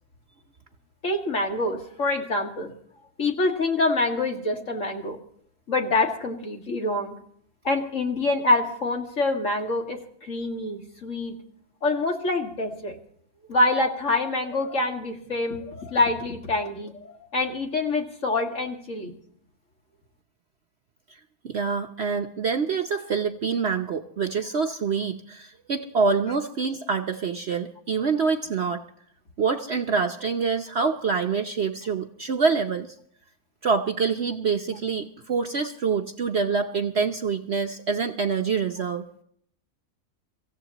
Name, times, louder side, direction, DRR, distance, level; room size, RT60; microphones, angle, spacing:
voice 1, 1.0-2.7 3.2-5.2 5.7-7.2 7.6-11.3 11.8-13.0 13.5-19.1, left 2 dB, 50° left, 3 dB, 2.3 m, -26 dB
voice 2, 21.4-28.8 29.4-32.9 33.6-39.1, right 5 dB, 50° right, 5 dB, 0.9 m, -26 dB
25.0 x 15.5 x 2.9 m, 0.64 s
omnidirectional pair, 1.7 m